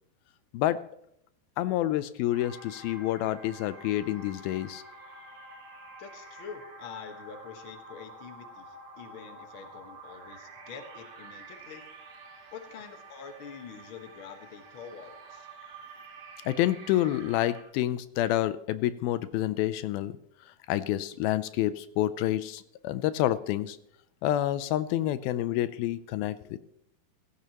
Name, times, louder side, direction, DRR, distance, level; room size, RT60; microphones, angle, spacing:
voice 1, 1.6-4.8 16.5-20.1 20.7-23.8 24.2-26.6, left 13 dB, 85° left, 14 dB, 2.4 m, -28 dB
sound 1, 2.3-17.6, right 2 dB, 75° right, 4.5 m, -48 dB
voice 2, 6.0-11.8 12.5-15.5, left 6 dB, 55° left, 5 dB, 1.5 m, -46 dB
16.0 x 15.5 x 3.0 m, 0.75 s
omnidirectional pair, 4.2 m